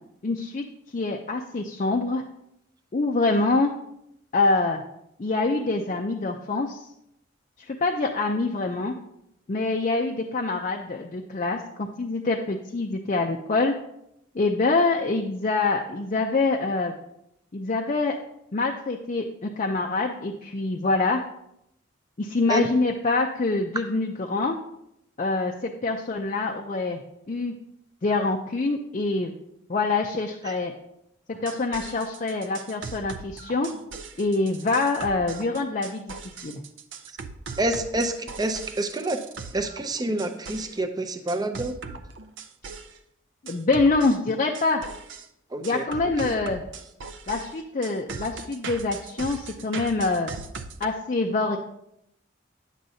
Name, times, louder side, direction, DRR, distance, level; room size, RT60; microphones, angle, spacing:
voice 1, 0.2-0.6 0.9-2.2 2.9-3.7 4.3-4.8 5.2-6.9 7.6-8.9 9.5-13.7 14.3-16.9 17.5-18.2 18.5-21.2 22.2-24.6 25.2-27.0 27.3-27.5 28.0-29.3 29.7-30.7 31.4-33.7 34.2-36.1 36.4-36.6 43.4-44.8 45.6-46.6 47.3-50.3 50.8-51.6, left 3 dB, 40° left, 1 dB, 0.5 m, -25 dB
sound 1, 31.3-40.8 41.3-43.0 43.5-45.3 45.6-50.9, right 4 dB, 65° right, 0.5 m, -39 dB
voice 2, 37.6-39.2 39.5-41.8 45.5-45.9 46.2-46.3, right 1 dB, 20° right, 8 dB, 0.5 m, -28 dB
9.8 x 7.7 x 2.7 m, 0.81 s
head